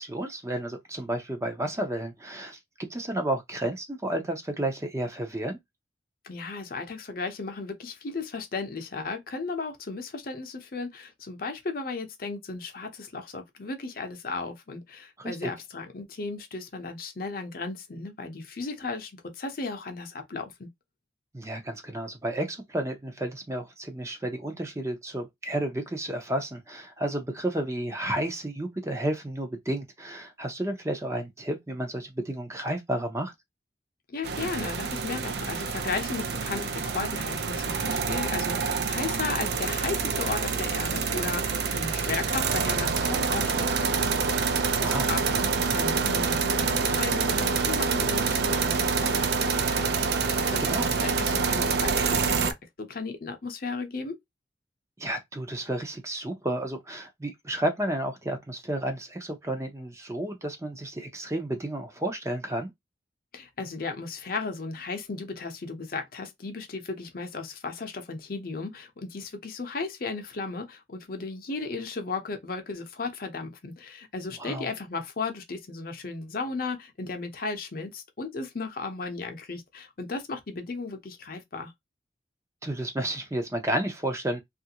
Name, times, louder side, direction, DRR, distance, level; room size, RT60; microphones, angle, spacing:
voice 1, 0.0-5.6 15.2-15.5 21.3-33.3 44.8-45.1 50.6-50.9 55.0-62.7 74.4-74.7 82.6-84.4, right 1 dB, 15° right, 0.5 m, -31 dB
voice 2, 6.2-20.7 34.1-49.9 50.2-54.2 63.3-81.7, left 4 dB, 50° left, 0.7 m, -35 dB
sound 1, 34.2-52.5, right 5 dB, 60° right, 0.5 m, -27 dB
3.1 x 2.5 x 2.8 m
head